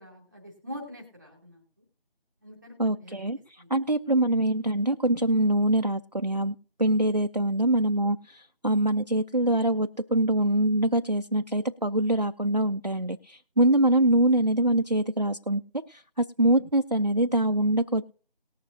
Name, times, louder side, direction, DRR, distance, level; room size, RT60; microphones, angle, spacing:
voice 1, 0.0-1.8 2.4-3.2 3.6-3.7, equal, ahead, -1 dB, 2.1 m, -44 dB
voice 2, 2.8-3.4 3.7-18.0, right 1 dB, 45° right, 7 dB, 0.5 m, -24 dB
19.0 x 6.9 x 2.6 m, 0.43 s
figure-of-eight pair, 175°, 29 cm